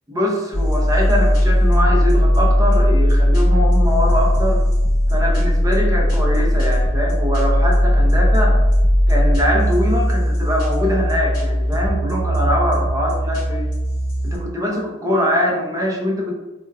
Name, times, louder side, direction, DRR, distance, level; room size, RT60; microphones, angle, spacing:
voice 1, 0.1-4.6 5.1-8.6 9.1-13.7 14.2-16.3, left 1 dB, 15° right, -1 dB, 0.6 m, -22 dB
sound 1, 0.5-14.4, equal, 45° left, 1.1 m, -17 dB
4.5 x 2.2 x 2.3 m, 1.1 s
head